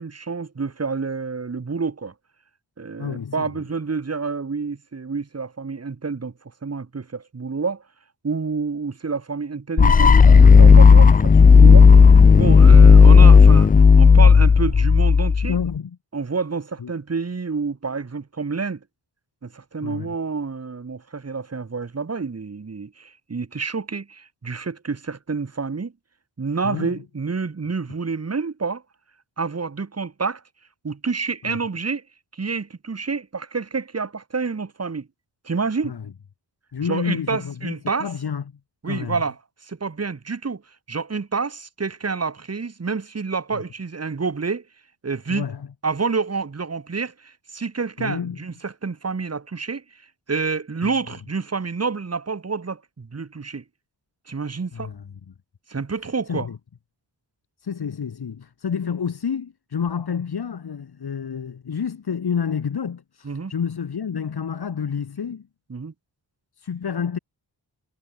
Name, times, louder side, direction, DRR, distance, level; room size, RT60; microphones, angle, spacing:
voice 1, 0.0-2.1 2.8-6.3 6.6-7.8 8.2-11.9 12.3-13.7 14.0-15.6 16.1-18.8 19.4-25.9 26.4-28.8 29.4-30.4 30.8-32.0 32.3-35.1 35.4-35.9 36.8-38.1 38.8-39.3 39.6-40.6 40.9-44.6 45.0-45.5 45.8-49.8 50.3-53.6 54.3-54.9 55.7-56.5 63.2-63.5 65.7-65.9, right 4 dB, 35° right, 1.5 m, -28 dB
voice 2, 3.0-3.5 12.7-12.9 15.4-16.0 16.8-16.9 19.8-20.1 26.6-27.0 31.4-31.6 35.8-36.0 36.7-37.7 38.0-38.4 38.8-39.2 43.5-43.6 45.3-45.7 48.0-48.4 50.8-50.9 54.7-55.3 56.3-56.6 57.6-65.4 66.6-67.2, left 7 dB, 60° left, 1.5 m, -29 dB
sound 1, 9.8-15.7, left 5 dB, 20° left, 0.3 m, -10 dB
cardioid pair, 60°, 43 cm